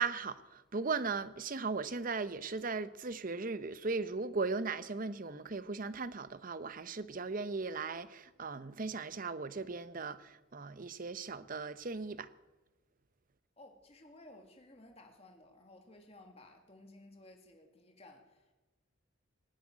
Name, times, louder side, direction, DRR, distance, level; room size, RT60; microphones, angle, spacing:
voice 1, 0.0-12.3, right 4 dB, 40° right, 0.7 m, -37 dB
voice 2, 13.6-18.5, left 1 dB, 30° left, 2.0 m, -57 dB
19.0 x 7.8 x 9.7 m
head